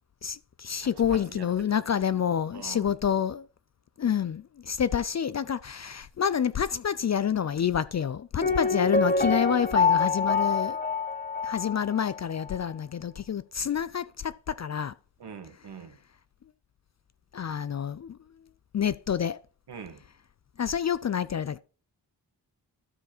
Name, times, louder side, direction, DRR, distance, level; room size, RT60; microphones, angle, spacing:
voice 1, 0.2-3.5 4.0-10.8 11.4-14.9 17.3-18.2 18.7-19.4 20.6-21.6, left 8 dB, 40° left, 0.4 m, -28 dB
voice 2, 0.8-1.8 2.5-2.9 8.4-8.7 15.2-16.0 19.7-20.0, right 6 dB, 65° right, 1.4 m, -44 dB
Piano, 8.4-12.2 12.4-12.5, left 4 dB, 20° left, 1.3 m, -26 dB
13.0 x 4.8 x 4.3 m
cardioid pair, 55°, 42 cm